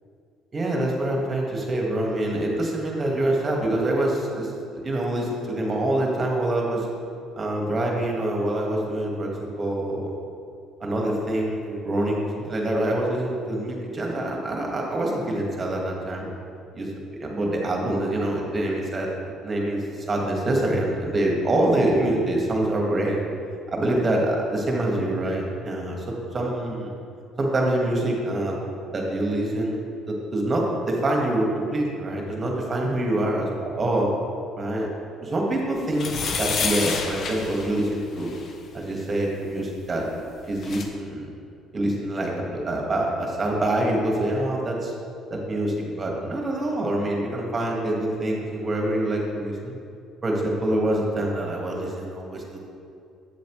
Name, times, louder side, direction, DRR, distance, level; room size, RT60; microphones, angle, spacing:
voice 1, 0.5-6.9 7.4-10.1 10.8-16.3 16.7-19.1 19.4-23.2 23.7-26.9 27.4-28.6 28.9-29.8 30.1-34.1 34.6-34.9 35.2-38.3 38.7-40.0 40.5-41.3 41.7-44.9 45.3-49.7 50.2-52.6, right 1 dB, 30° right, -1 dB, 1.5 m, -25 dB
sound 1, 35.9-38.5 40.2-40.3 40.5-40.8, left 5 dB, 50° left, 0.7 m, -29 dB
8.3 x 7.2 x 3.1 m, 2.4 s
cardioid pair, 115°, 0 cm